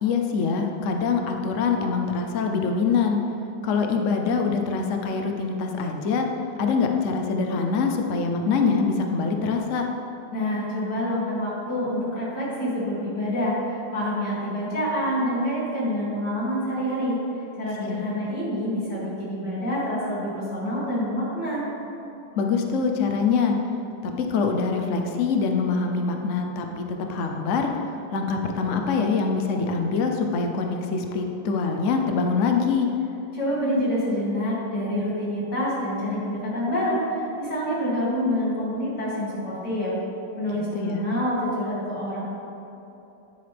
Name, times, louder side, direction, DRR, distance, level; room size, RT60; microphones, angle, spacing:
voice 1, 0.0-3.2 3.6-6.3 6.6-9.9 17.8-18.0 22.4-23.6 24.0-26.8 27.1-27.7 28.1-32.9 40.5-41.0, left 5 dB, 70° left, 3 dB, 0.7 m, -24 dB
voice 2, 10.3-17.2 17.6-21.6 33.3-39.9 40.4-42.2, equal, 50° left, -7 dB, 3.4 m, -27 dB
11.0 x 10.5 x 3.5 m, 3.0 s
omnidirectional pair, 2.3 m